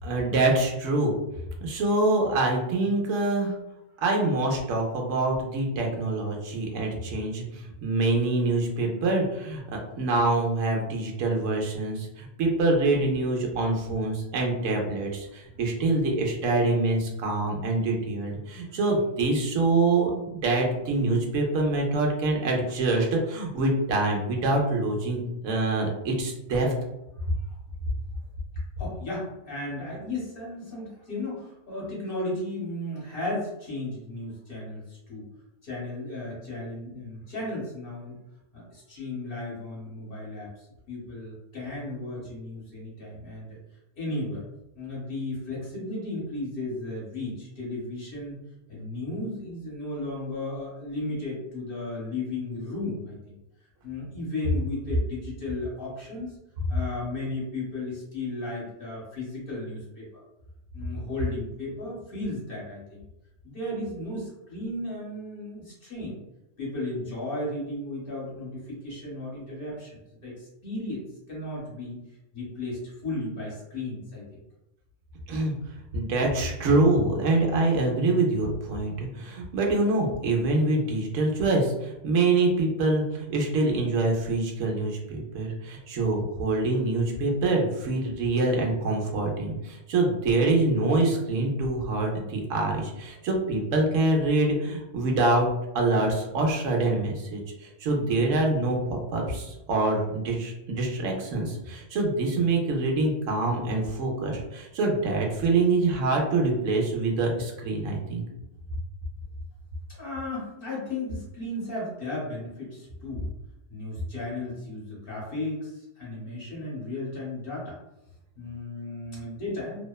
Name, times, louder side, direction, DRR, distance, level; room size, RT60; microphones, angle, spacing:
voice 1, 0.0-1.2 1.6-3.5 4.0-9.6 10.0-26.7 75.3-75.5 75.9-95.5 95.7-108.2, right 2 dB, 85° right, 1 dB, 1.0 m, -25 dB
voice 2, 28.8-35.3 35.6-38.2 38.5-43.6 44.0-44.4 44.7-48.4 48.7-53.4 53.8-56.3 56.7-60.2 60.7-63.0 63.4-66.2 66.6-72.0 72.3-74.2 110.0-113.3 113.7-117.8 118.4-119.8, left 2 dB, 50° left, -6 dB, 1.2 m, -35 dB
2.8 x 2.1 x 2.2 m, 0.91 s
omnidirectional pair, 1.3 m